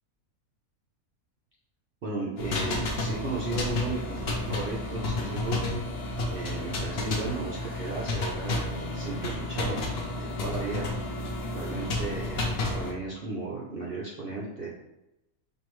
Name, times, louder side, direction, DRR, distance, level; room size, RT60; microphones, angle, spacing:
voice 1, 2.0-5.8 6.3-9.8 10.2-10.9 11.5-14.7, right 2 dB, 55° right, -4 dB, 0.7 m, -35 dB
sound 1, 2.4-12.9, left 2 dB, 55° left, 0.7 m, -31 dB
4.5 x 2.6 x 3.1 m, 0.89 s
omnidirectional pair, 1.5 m